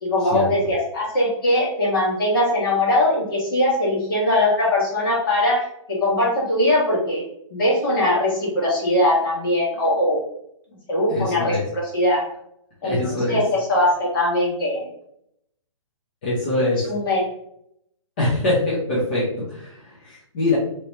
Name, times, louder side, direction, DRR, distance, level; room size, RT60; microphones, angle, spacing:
voice 1, 0.0-7.2 7.5-10.2 10.9-12.2 12.8-13.4 13.7-14.8 16.9-17.2, left 1 dB, 45° left, -4 dB, 1.5 m, -21 dB
voice 2, 11.1-11.6 12.8-13.4 16.2-16.8 18.2-20.6, left 2 dB, 20° left, -8 dB, 0.5 m, -23 dB
2.9 x 2.9 x 3.2 m, 0.72 s
hypercardioid pair, 175°, 17 cm